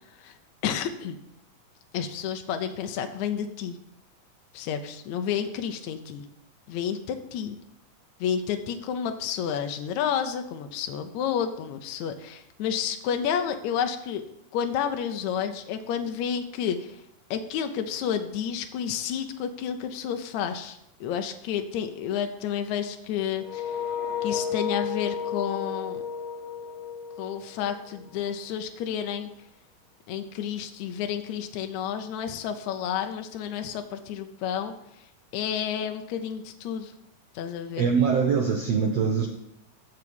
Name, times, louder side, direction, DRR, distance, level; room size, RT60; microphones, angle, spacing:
voice 1, 0.6-1.2 1.9-3.8 4.5-6.2 6.7-7.6 8.2-14.2 14.5-17.0 17.3-23.8 24.2-26.0 27.2-29.3 30.1-35.1 35.3-36.9 37.3-37.9, left 8 dB, 80° left, 6 dB, 1.6 m, -30 dB
sound 1, 23.4-28.2, left 6 dB, 30° right, 0.9 m, -32 dB
voice 2, 37.8-39.3, right 6 dB, 85° right, 3 dB, 1.4 m, -23 dB
14.5 x 4.8 x 7.0 m, 0.80 s
omnidirectional pair, 4.2 m